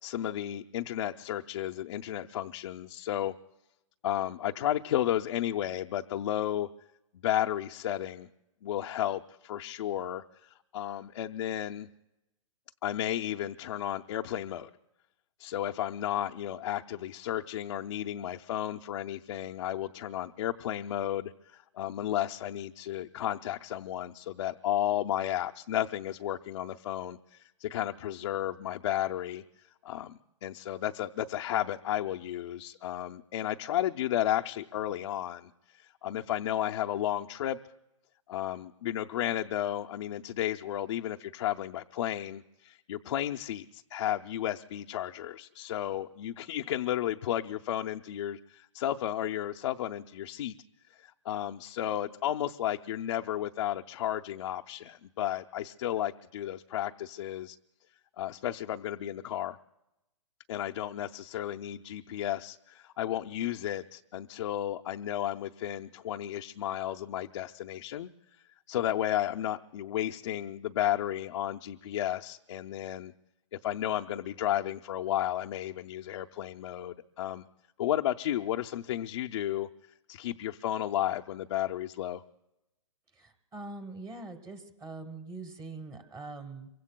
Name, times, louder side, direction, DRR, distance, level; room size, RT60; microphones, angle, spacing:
voice 1, 0.0-3.3 4.0-6.7 7.2-8.3 8.6-11.9 12.8-14.7 15.4-29.4 29.8-37.6 38.3-50.5 50.9-57.6 58.2-59.6 60.5-68.1 68.7-73.1 73.6-77.4 77.8-79.7 80.1-82.2, left 12 dB, 60° left, 5 dB, 0.6 m, -33 dB
voice 2, 83.2-86.7, right 3 dB, 15° right, 7 dB, 1.1 m, -43 dB
27.0 x 24.0 x 2.2 m, 0.90 s
hypercardioid pair, 160°, 18 cm